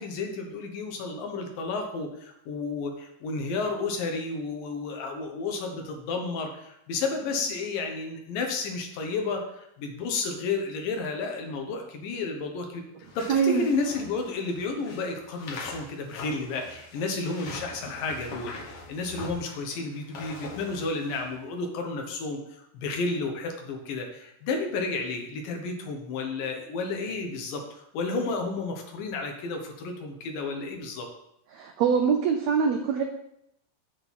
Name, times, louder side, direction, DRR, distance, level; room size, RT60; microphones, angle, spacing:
voice 1, 0.0-12.8 13.2-31.1, left 3 dB, 75° left, 3 dB, 2.9 m, -32 dB
sound 1, 13.0-21.3, left 3 dB, 55° left, 1.5 m, -43 dB
voice 2, 13.3-13.7 31.5-33.0, right 6 dB, 90° right, 4 dB, 1.5 m, -23 dB
8.7 x 3.9 x 7.1 m, 0.78 s
omnidirectional pair, 4.0 m